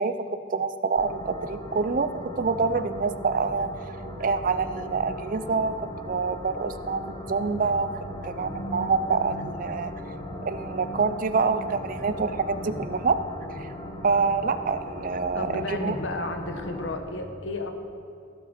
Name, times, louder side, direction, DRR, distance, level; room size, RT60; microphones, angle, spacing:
voice 1, 0.0-2.1 2.4-9.9 10.4-13.2 13.6-13.7 14.0-16.0, right 4 dB, 45° right, 11 dB, 0.4 m, -26 dB
sound 1, 1.0-17.0, equal, 20° left, 1.0 m, -38 dB
voice 2, 9.1-9.5 12.6-12.9 15.3-17.8, left 2 dB, 70° left, 6 dB, 1.0 m, -33 dB
16.0 x 7.6 x 4.3 m, 2.4 s
head